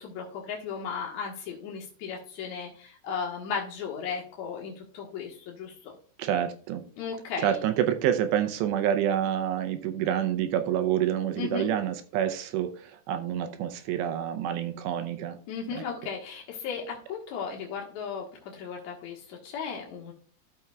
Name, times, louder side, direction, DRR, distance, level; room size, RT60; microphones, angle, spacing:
voice 1, 0.0-5.9 7.0-7.6 11.3-11.7 15.5-20.1, left 6 dB, 70° left, -1 dB, 1.7 m, -36 dB
voice 2, 6.2-6.8 7.4-15.4 15.8-15.9, right 10 dB, 80° right, 8 dB, 2.8 m, -28 dB
13.0 x 6.0 x 2.3 m, 0.44 s
omnidirectional pair, 5.2 m